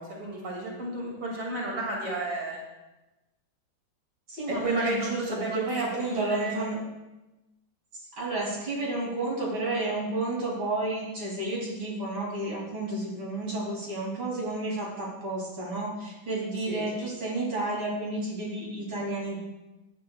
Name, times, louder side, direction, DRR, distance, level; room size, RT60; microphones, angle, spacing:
voice 1, 0.0-2.6 4.5-6.6 16.6-16.8, right 2 dB, 40° right, -3 dB, 2.9 m, -33 dB
voice 2, 4.3-6.8 7.9-19.4, right 2 dB, 80° right, -4 dB, 3.7 m, -31 dB
16.5 x 10.5 x 2.4 m, 1.0 s
omnidirectional pair, 2.2 m